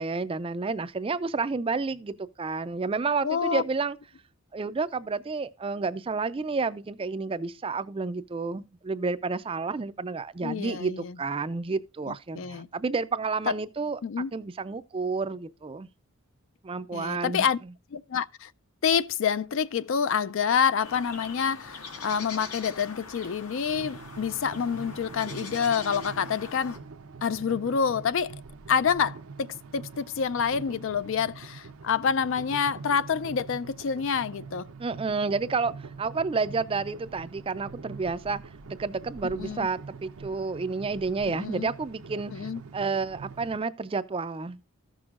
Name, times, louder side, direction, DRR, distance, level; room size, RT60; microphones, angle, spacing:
voice 1, 0.0-4.0 4.5-14.0 14.3-15.9 16.6-17.5 34.8-38.4 38.7-44.6, right 4 dB, 25° right, 0.3 m, -30 dB
voice 2, 3.2-3.6 10.4-11.1 12.1-12.7 14.0-14.3 16.9-17.6 17.9-18.5 18.8-26.8 27.2-28.4 28.7-34.7 39.2-39.7 41.3-41.7 42.3-42.6, left 6 dB, 55° left, 0.4 m, -27 dB
sound 1, 20.8-26.8, left 4 dB, 80° left, 1.5 m, -42 dB
sound 2, 23.7-43.6, right 4 dB, 70° right, 0.6 m, -44 dB
14.5 x 6.2 x 2.4 m
head